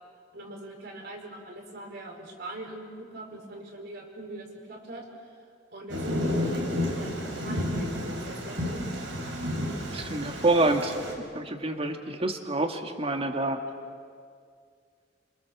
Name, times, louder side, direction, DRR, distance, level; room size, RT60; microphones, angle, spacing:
voice 1, 0.3-5.0 5.7-8.9, right 1 dB, 60° right, 1 dB, 5.1 m, -42 dB
Thunder, 5.9-11.1, left 1 dB, 80° right, 4.5 m, -31 dB
voice 2, 9.9-13.6, right 2 dB, 35° right, 5 dB, 2.0 m, -27 dB
27.5 x 26.0 x 7.2 m, 2.2 s
head